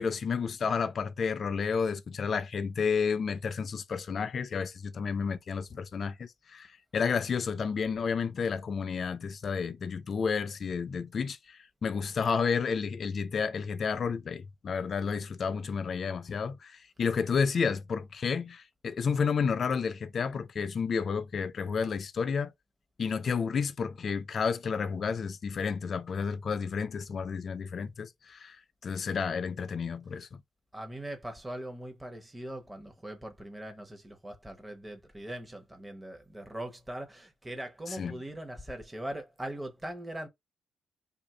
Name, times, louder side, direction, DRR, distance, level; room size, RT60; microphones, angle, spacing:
voice 1, 0.0-22.5 23.0-28.6 28.8-30.4 37.9-38.2, left 6 dB, 50° left, 0.4 m, -31 dB
voice 2, 30.7-40.3, right 1 dB, 10° right, 0.9 m, -41 dB
2.7 x 2.5 x 4.2 m
cardioid pair, 90°, 0 cm